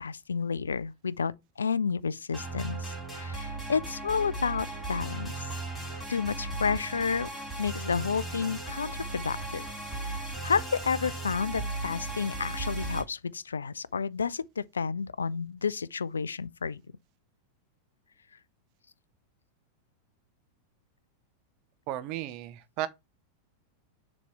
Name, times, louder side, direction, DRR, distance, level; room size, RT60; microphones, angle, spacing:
voice 1, 0.0-5.5 6.1-7.3 7.6-9.7 10.0-16.8, left 5 dB, 70° left, 0.3 m, -31 dB
sound 1, 2.3-13.0, right 2 dB, 10° left, 3.0 m, -36 dB
voice 2, 21.9-22.9, right 14 dB, 40° right, 0.7 m, -34 dB
6.8 x 3.0 x 5.7 m
figure-of-eight pair, 90°, 0 cm